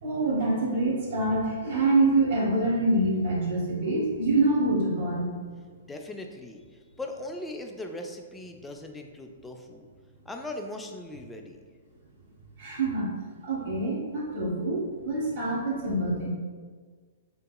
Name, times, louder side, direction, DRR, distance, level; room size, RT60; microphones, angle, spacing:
voice 1, 0.0-5.3 12.6-13.1 13.4-16.3, right 2 dB, 55° right, -4 dB, 1.2 m, -25 dB
voice 2, 5.9-9.9 10.3-11.6, left 1 dB, 5° left, 2 dB, 0.3 m, -39 dB
3.8 x 2.7 x 2.2 m, 1.5 s
hypercardioid pair, 125°, 0 cm